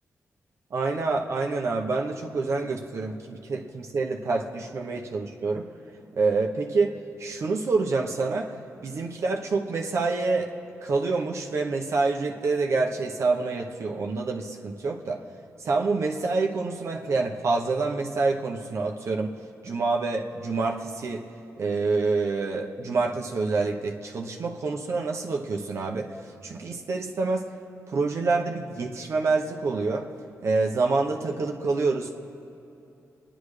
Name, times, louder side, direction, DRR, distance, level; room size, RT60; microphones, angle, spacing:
voice 1, 0.7-5.6 6.1-8.5 8.8-10.5 10.8-15.2 15.6-19.3 19.6-21.2 21.6-26.1 26.4-27.4 27.9-30.1 30.4-32.2, right 3 dB, 60° right, 1 dB, 1.0 m, -27 dB
26.0 x 10.0 x 3.3 m, 2.9 s
cardioid pair, 105°, 5 cm